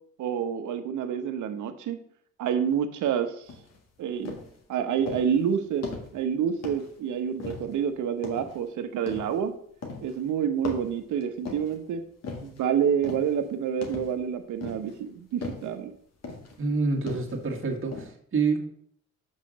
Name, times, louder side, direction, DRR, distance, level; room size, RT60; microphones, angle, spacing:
voice 1, 0.2-2.0 2.4-3.4 4.0-4.4 4.7-9.5 10.0-12.0 12.4-15.9, right 8 dB, 80° right, 8 dB, 1.0 m, -28 dB
sound 1, 3.5-3.8 4.3-4.6 5.1-5.4 5.8-6.2 6.6-7.0 7.4-7.8 8.2-8.6 9.1-9.4 9.8-10.2 10.6-11.8 12.2-12.6 13.0-13.4 13.8-14.2 14.6-15.0 15.4-15.7 16.2-16.6 17.1-17.5 17.9-18.1, left 4 dB, 55° left, 1.9 m, -38 dB
voice 2, 16.6-18.7, right 4 dB, 45° right, 2 dB, 1.8 m, -27 dB
5.7 x 5.3 x 6.3 m, 0.64 s
cardioid pair, 90°, 30 cm